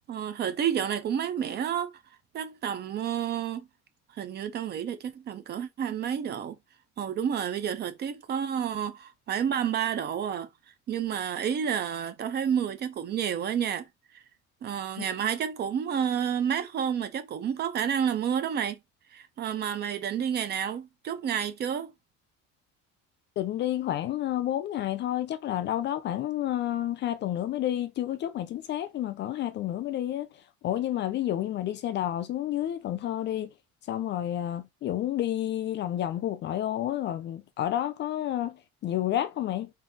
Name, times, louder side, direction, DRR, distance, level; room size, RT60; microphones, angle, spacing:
voice 1, 0.1-1.9 2.3-3.6 4.1-6.6 7.0-10.5 10.9-13.9 14.1-14.2 14.6-18.8 19.1-21.9, right 8 dB, 35° right, 0.5 m, -30 dB
voice 2, 23.4-30.3 30.6-33.5 33.9-38.6 38.8-39.7, left 12 dB, 40° left, 0.4 m, -30 dB
3.9 x 2.7 x 3.5 m
cardioid pair, 170°, 30 cm